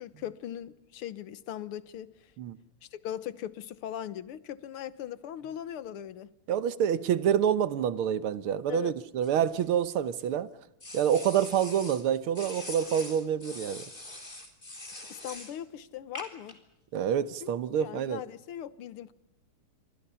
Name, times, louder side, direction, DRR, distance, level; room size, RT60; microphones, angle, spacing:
voice 1, 0.0-2.3 2.9-6.3 8.7-8.9 15.1-16.6 17.4-17.5 17.8-19.1, left 11 dB, 85° left, 2.0 m, -39 dB
voice 2, 6.5-10.5 10.9-13.9 16.9-18.2, right 9 dB, 80° right, 1.9 m, -27 dB
sound 1, 9.2-10.2 10.8-12.0 12.3-15.6 16.2-16.5, left 2 dB, 20° left, 3.8 m, -43 dB
28.0 x 24.0 x 5.7 m
omnidirectional pair, 2.3 m